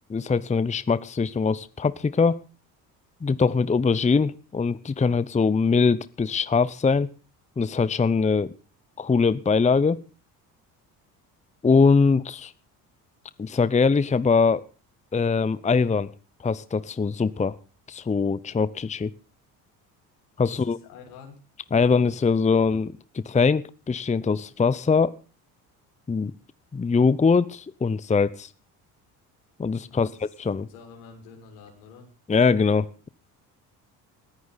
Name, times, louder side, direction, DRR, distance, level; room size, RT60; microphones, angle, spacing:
voice 1, 0.0-2.4 3.2-7.1 7.6-8.5 9.0-10.0 11.6-12.5 13.4-14.6 15.1-16.1 16.4-17.6 17.9-19.1 20.4-20.8 21.7-25.2 26.1-26.3 26.7-28.5 29.6-30.7 32.3-33.1, left 5 dB, 15° left, 17 dB, 0.8 m, -22 dB
voice 2, 20.5-21.4 29.8-30.3 30.7-32.1, left 5 dB, 75° left, 2 dB, 5.5 m, -47 dB
19.5 x 14.5 x 4.1 m, 0.34 s
hypercardioid pair, 55°, 47 cm